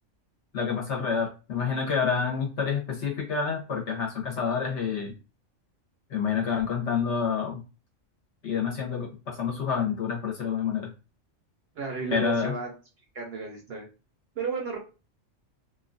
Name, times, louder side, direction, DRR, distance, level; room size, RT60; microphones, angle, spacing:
voice 1, 0.5-5.1 6.1-7.6 8.4-10.9 12.1-12.5, left 6 dB, 60° left, -2 dB, 1.2 m, -28 dB
voice 2, 11.8-12.8 13.1-13.9 14.4-14.8, right 4 dB, 60° right, 1 dB, 0.7 m, -33 dB
2.8 x 2.3 x 2.5 m, 0.32 s
omnidirectional pair, 1.4 m